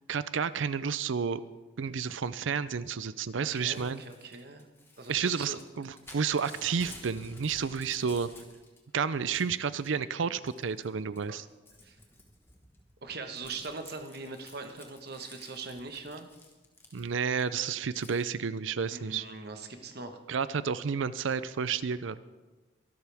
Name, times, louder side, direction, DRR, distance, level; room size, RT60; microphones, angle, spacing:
voice 1, 0.1-1.4 1.8-4.0 5.1-8.3 8.9-11.4 16.9-19.3 20.3-22.2, right 6 dB, 75° right, 15 dB, 0.5 m, -31 dB
voice 2, 3.5-4.7 5.0-5.6 11.8-12.0 13.0-16.3 18.9-20.2, right 3 dB, 50° right, 6 dB, 1.4 m, -41 dB
Crumpling crinkling / Tearing, 3.6-8.8 9.1-9.9 10.5-10.9 11.2-17.4 18.0-18.2, left 2 dB, 10° left, 1.5 m, -53 dB
23.0 x 12.0 x 3.5 m, 1.2 s
head